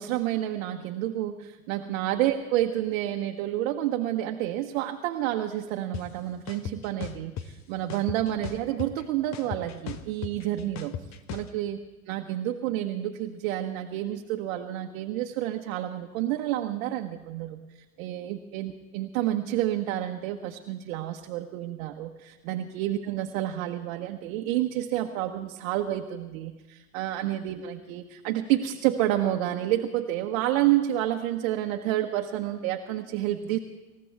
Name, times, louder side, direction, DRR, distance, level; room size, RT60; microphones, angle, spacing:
voice 1, 0.0-10.9 11.3-11.8 12.1-17.6 18.0-33.6, right 13 dB, 55° right, 3 dB, 1.2 m, -29 dB
sound 1, 5.9-6.0 6.5-7.5 7.9-9.0 9.3-11.5, left 9 dB, 40° left, 1.2 m, -36 dB
26.5 x 15.0 x 3.5 m, 1.1 s
hypercardioid pair, 85°, 42 cm